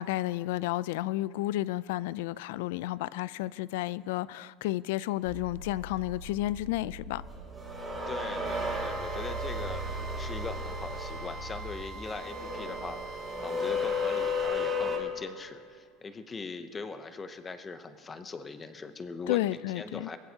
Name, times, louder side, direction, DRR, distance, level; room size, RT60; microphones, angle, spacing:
voice 1, 0.0-7.2 19.3-20.1, left 16 dB, 85° left, 0.3 m, -32 dB
sound 1, 5.3-15.0, left 2 dB, 10° right, 2.1 m, -35 dB
voice 2, 8.1-20.2, left 4 dB, 15° left, 0.6 m, -41 dB
Drill, 8.5-14.5, right 3 dB, 45° right, 2.5 m, -44 dB
21.5 x 14.5 x 2.8 m
cardioid pair, 165°, 0 cm